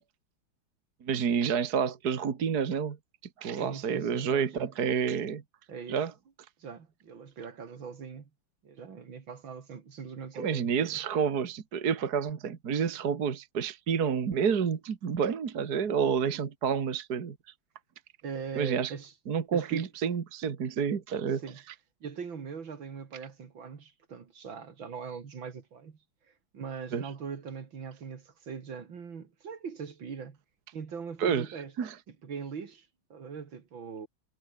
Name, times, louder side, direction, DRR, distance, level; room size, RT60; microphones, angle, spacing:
voice 1, 1.0-3.0 3.4-5.4 5.9-6.1 10.3-17.4 18.6-18.9 19.3-21.4 26.9-27.1 31.2-31.5 31.8-32.0, right 7 dB, 50° right, 2.1 m, -29 dB
voice 2, 3.5-4.7 5.7-6.0 6.6-8.3 8.6-11.0 18.2-19.1 19.5-19.9 21.3-21.6 22.0-26.0 26.5-30.4 30.7-31.7 32.1-34.1, right 6 dB, 70° right, 3.0 m, -41 dB
omnidirectional pair, 2.2 m